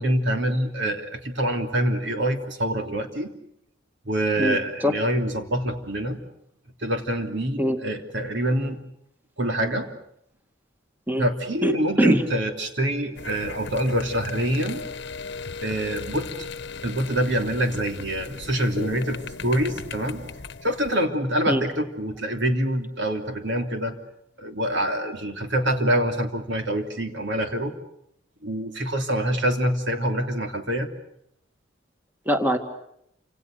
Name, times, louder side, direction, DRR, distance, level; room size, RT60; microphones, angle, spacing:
voice 1, 0.0-3.3 4.0-6.2 6.8-8.8 9.4-9.9 11.2-14.8 15.6-16.3 16.8-20.2 20.6-23.9 24.4-27.7 28.4-30.9, right 1 dB, 65° right, 5 dB, 3.2 m, -25 dB
voice 2, 4.4-4.9 7.6-7.8 11.1-11.2 11.6-12.2 21.5-21.6 32.3-32.6, equal, 10° right, 6 dB, 2.0 m, -22 dB
sound 1, 13.2-21.0, left 4 dB, 60° left, 1.1 m, -37 dB
29.0 x 27.0 x 6.7 m, 0.75 s
head